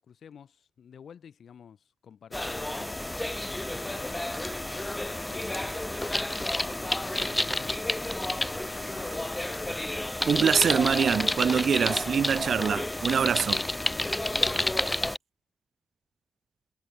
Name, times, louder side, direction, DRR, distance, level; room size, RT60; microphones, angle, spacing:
voice 1, 0.0-5.8 6.3-8.4 8.7-10.0 14.3-14.9, left 7 dB, 80° left, 3.1 m, -51 dB
sound 1, 2.3-15.2, left 1 dB, 15° left, 0.7 m, -30 dB
voice 2, 10.3-13.6, right 7 dB, 75° right, 0.4 m, -24 dB
cardioid pair, 65°, 0 cm